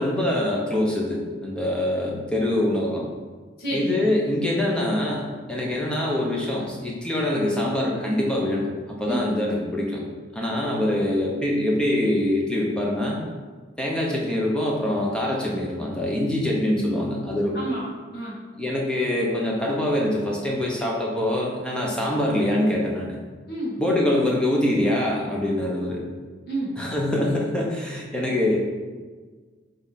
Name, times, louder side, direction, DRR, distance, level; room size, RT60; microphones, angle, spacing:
voice 1, 0.0-3.0 3.7-10.0 10.3-13.2 13.8-17.6 18.6-23.2 23.8-26.0 26.8-28.8, left 1 dB, 5° left, -3 dB, 1.1 m, -24 dB
voice 2, 3.6-4.1 9.1-9.2 17.5-18.4 23.5-23.8 26.5-26.8, right 1 dB, 60° left, -6 dB, 1.8 m, -30 dB
8.0 x 3.5 x 4.2 m, 1.4 s
head